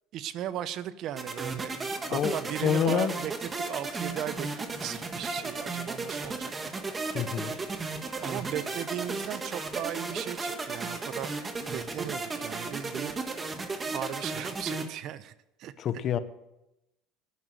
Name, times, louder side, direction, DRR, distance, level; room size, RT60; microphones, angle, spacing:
voice 1, 0.1-1.8 2.1-7.3 8.2-11.3 11.7-13.2 13.9-15.3 15.6-15.7, right 11 dB, 55° right, 15 dB, 0.7 m, -37 dB
sound 1, 1.2-14.9, right 3 dB, 20° right, 1.5 m, -35 dB
voice 2, 2.1-3.1 7.1-7.6 15.8-16.2, left 9 dB, 45° left, 13 dB, 0.9 m, -27 dB
11.5 x 9.3 x 7.8 m, 0.89 s
supercardioid pair, 125°, 0 cm